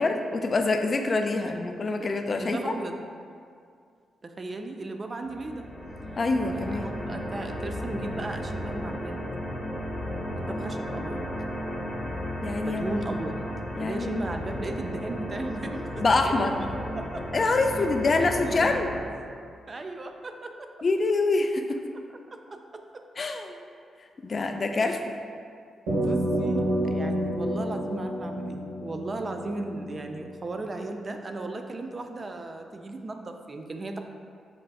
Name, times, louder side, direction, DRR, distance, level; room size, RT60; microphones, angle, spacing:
voice 1, 0.0-2.8 6.2-6.9 12.4-13.0 13.7-14.3 16.0-16.5 17.3-18.9 20.8-21.8 23.2-23.6 24.2-25.2, left 3 dB, 45° left, 5 dB, 0.3 m, -26 dB
voice 2, 1.4-2.1 2.4-3.0 4.2-5.6 6.5-9.2 10.4-11.2 12.6-13.4 13.8-15.8 16.2-16.3 17.0-17.2 18.1-18.8 19.7-20.7 22.3-23.0 25.9-34.0, right 2 dB, 40° right, 5 dB, 0.3 m, -36 dB
sound 1, 5.3-19.0, equal, ahead, 0.8 m, -34 dB
sound 2, 25.9-30.5, right 1 dB, 85° right, 1.1 m, -29 dB
6.0 x 2.4 x 2.3 m, 2.3 s
supercardioid pair, 45°, 0 cm